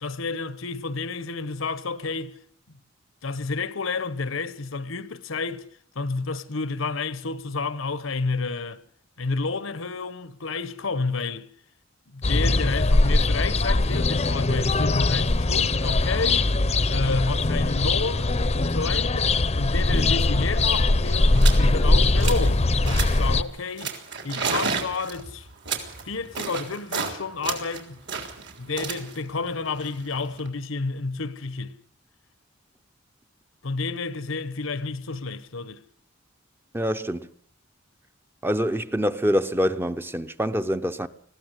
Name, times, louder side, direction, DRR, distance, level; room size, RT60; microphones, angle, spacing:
voice 1, 0.0-2.4 2.7-2.8 3.2-5.6 5.9-8.8 9.2-11.5 12.1-16.5 16.9-23.9 24.2-25.5 26.0-28.0 28.6-31.8 33.6-35.8, left 4 dB, 80° left, 1.0 m, -30 dB
sound 1, 12.2-23.4, left 2 dB, 30° left, 0.7 m, -21 dB
sound 2, 20.3-20.4 20.6-20.8 21.3-21.6 22.0-22.5 22.8-23.3 23.8-27.1 27.4-30.5, right 5 dB, 60° right, 3.6 m, -32 dB
voice 2, 36.7-37.3 38.4-41.1, equal, 10° right, 0.7 m, -25 dB
20.5 x 15.5 x 8.1 m
head